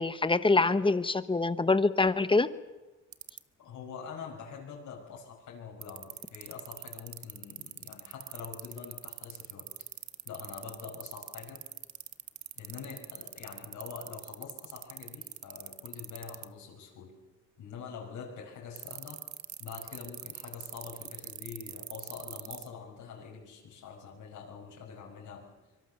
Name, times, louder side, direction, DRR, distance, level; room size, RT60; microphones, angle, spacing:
voice 1, 0.0-2.5, left 3 dB, 15° left, 13 dB, 1.0 m, -25 dB
sound 1, 3.1-3.4 5.8-16.5 18.8-22.7, right 12 dB, 65° right, 1.1 m, -41 dB
voice 2, 3.6-9.7 10.3-11.7 12.6-17.2 17.6-19.3 19.6-25.5, left 6 dB, 75° left, -1 dB, 5.5 m, -45 dB
25.0 x 24.0 x 6.9 m, 1.1 s
cardioid pair, 110°, 31 cm